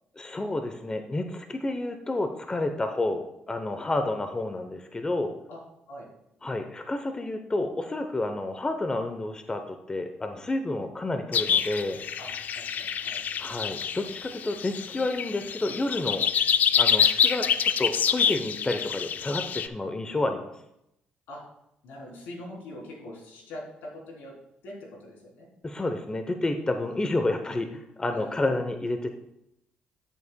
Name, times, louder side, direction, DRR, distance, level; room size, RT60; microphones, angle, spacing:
voice 1, 0.2-5.3 6.4-12.0 13.4-16.2 16.8-20.5 25.6-29.1, left 2 dB, 20° left, 7 dB, 0.8 m, -30 dB
sound 1, 11.3-19.7, left 8 dB, 55° left, 0.4 m, -26 dB
voice 2, 12.5-13.2 21.3-21.4 21.8-24.3 24.6-25.5 28.1-28.6, left 1 dB, 80° left, -2 dB, 3.5 m, -42 dB
13.0 x 7.1 x 2.3 m, 0.82 s
supercardioid pair, 70°, 3 cm